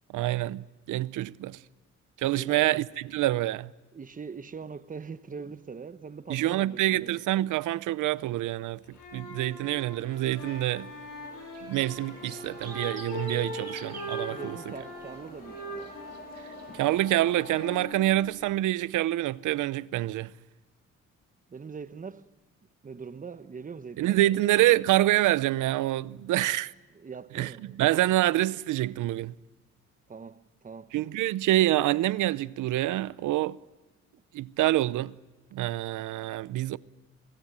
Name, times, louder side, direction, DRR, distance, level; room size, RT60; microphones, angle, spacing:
voice 1, 0.1-1.6 2.2-3.7 6.3-10.9 11.6-14.6 16.7-20.3 24.0-26.7 27.3-27.5 27.8-29.3 30.9-33.6 34.3-35.1 35.5-36.8, right 15 dB, 80° right, 0.7 m, -26 dB
voice 2, 2.3-2.7 3.9-7.1 14.3-16.0 21.5-22.3 22.8-24.4 26.9-27.8 30.1-30.9, right 5 dB, 25° right, 1.0 m, -42 dB
sound 1, 8.8-18.6, left 1 dB, 80° left, 7.9 m, -41 dB
sound 2, 10.1-16.9, right 7 dB, 55° right, 2.3 m, -48 dB
sound 3, 11.8-17.9, left 4 dB, 30° left, 2.1 m, -48 dB
24.0 x 16.0 x 9.5 m
cardioid pair, 90°, 30 cm